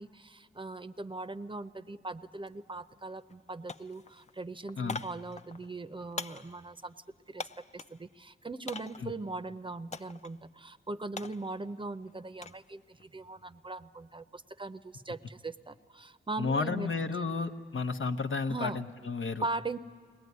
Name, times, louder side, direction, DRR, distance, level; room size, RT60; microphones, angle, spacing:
voice 1, 0.0-6.9 7.3-7.5 7.7-16.9 17.2-17.3 18.5-18.8 19.4-19.8, right 3 dB, 25° right, 11 dB, 0.6 m, -40 dB
sound 1, 2.4-2.6 2.9-3.4 3.7-8.0 8.7-9.2 9.9-10.3 10.7-12.6 13.0-13.4, left 4 dB, 35° left, 0.5 m, -43 dB
voice 2, 16.4-19.4, left 4 dB, 80° left, 7 dB, 1.0 m, -32 dB
22.5 x 18.5 x 9.5 m, 2.1 s
wide cardioid pair, 80°, 20 cm